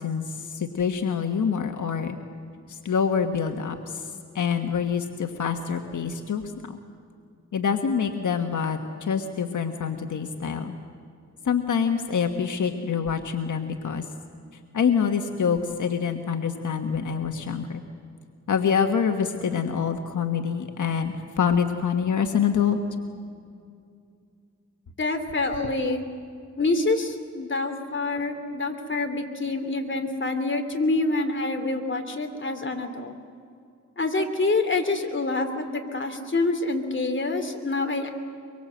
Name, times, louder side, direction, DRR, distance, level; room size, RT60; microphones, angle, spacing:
voice 1, 0.0-2.2 2.7-4.1 4.3-6.8 7.5-10.8 11.4-14.0 14.7-17.8 18.5-22.8, left 7 dB, 85° left, 5 dB, 1.4 m, -26 dB
voice 2, 25.0-26.0 26.6-33.1 34.0-38.1, left 2 dB, 40° left, 5 dB, 2.9 m, -26 dB
24.0 x 23.5 x 7.8 m, 2.4 s
wide cardioid pair, 80°, 30 cm